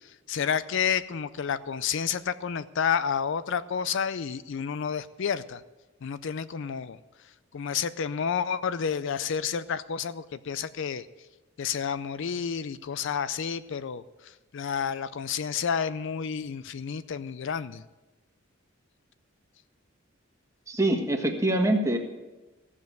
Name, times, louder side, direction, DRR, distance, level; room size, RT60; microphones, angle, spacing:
voice 1, 0.3-5.6 6.0-7.0 7.5-11.1 11.6-17.8, left 7 dB, 65° left, 15 dB, 0.4 m, -30 dB
voice 2, 20.7-22.0, right 1 dB, 15° right, 2 dB, 1.5 m, -24 dB
15.5 x 7.4 x 7.8 m, 1.1 s
head